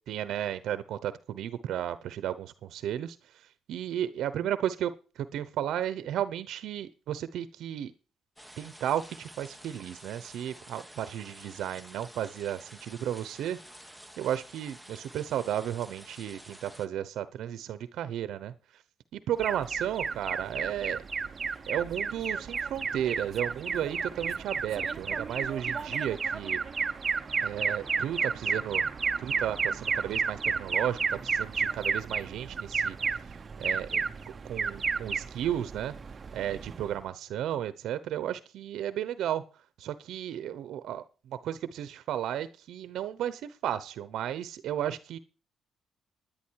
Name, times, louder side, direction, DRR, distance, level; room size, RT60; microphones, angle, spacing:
voice 1, 0.1-7.9 8.6-13.6 14.2-18.8 19.1-21.0 21.7-26.6 27.4-28.8 29.2-33.0 33.6-34.0 34.4-35.9 36.3-39.4 39.8-45.2, right 10 dB, 80° right, 14 dB, 0.9 m, -34 dB
sound 1, 8.4-16.9, equal, ahead, 1.0 m, -50 dB
Alarm, 19.4-37.0, right 5 dB, 35° right, 0.8 m, -32 dB
12.0 x 10.5 x 4.7 m, 0.35 s
cardioid pair, 90°, 0 cm